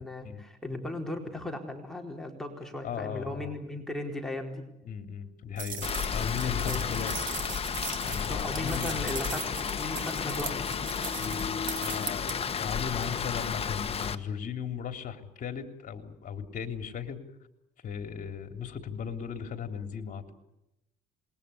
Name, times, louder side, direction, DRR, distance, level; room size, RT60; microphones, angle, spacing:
voice 1, 0.0-4.6 6.7-7.1 8.0-10.7, left 1 dB, ahead, 1 dB, 4.3 m, -37 dB
voice 2, 2.8-3.5 4.8-7.3 8.0-9.1 11.2-17.2 17.8-20.3, left 7 dB, 50° left, 7 dB, 3.4 m, -37 dB
sound 1, 5.6-12.3, right 7 dB, 50° right, 4.5 m, -39 dB
Rain, 5.8-14.1, left 7 dB, 35° left, 1.6 m, -32 dB
27.5 x 21.5 x 8.5 m, 0.86 s
cardioid pair, 110°, 17 cm